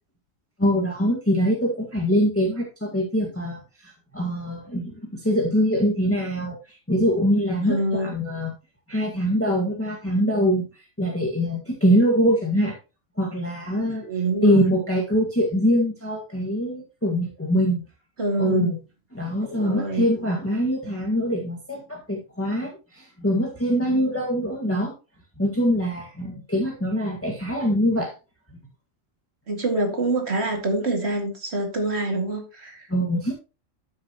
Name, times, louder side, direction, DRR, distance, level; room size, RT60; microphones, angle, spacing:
voice 1, 0.6-8.5 8.9-12.7 13.2-14.0 14.4-17.8 18.4-18.8 19.1-24.9 25.4-28.1 32.9-33.3, equal, 10° left, -2 dB, 1.8 m, -23 dB
voice 2, 7.7-8.1 14.0-14.7 18.2-18.7 19.5-20.1 29.5-32.8, right 2 dB, 50° right, 3 dB, 2.5 m, -25 dB
13.0 x 6.3 x 3.0 m, 0.31 s
omnidirectional pair, 1.4 m